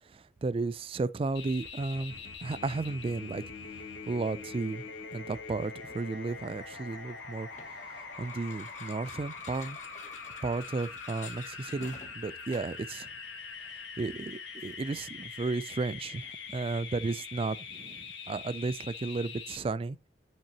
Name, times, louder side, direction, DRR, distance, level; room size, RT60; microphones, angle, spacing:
voice 1, 0.1-3.4 4.1-4.8 5.1-7.5 8.2-9.8 10.4-13.1 14.0-20.0, right 3 dB, 30° right, 0.3 m, -34 dB
sound 1, 1.3-19.6, left 5 dB, 75° left, 2.0 m, -43 dB
sound 2, 7.5-12.9, left 5 dB, 40° left, 1.0 m, -50 dB
7.4 x 5.8 x 2.8 m
head